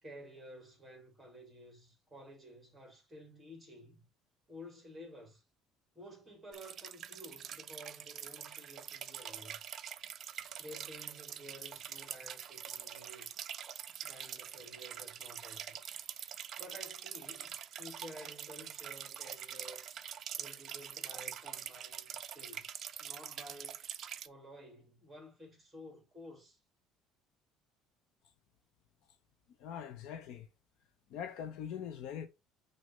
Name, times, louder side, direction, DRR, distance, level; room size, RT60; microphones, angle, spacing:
voice 1, 0.0-4.1 4.5-5.4 6.0-9.6 10.6-13.3 14.0-15.9 16.6-20.0 20.4-23.9 24.2-26.6, equal, 5° right, 2.1 m, -53 dB
sound 1, 6.5-24.3, right 9 dB, 35° right, 0.4 m, -45 dB
voice 2, 29.6-30.5 31.1-32.3, left 8 dB, 60° left, 0.8 m, -42 dB
6.2 x 2.8 x 5.4 m
cardioid pair, 165°, 0 cm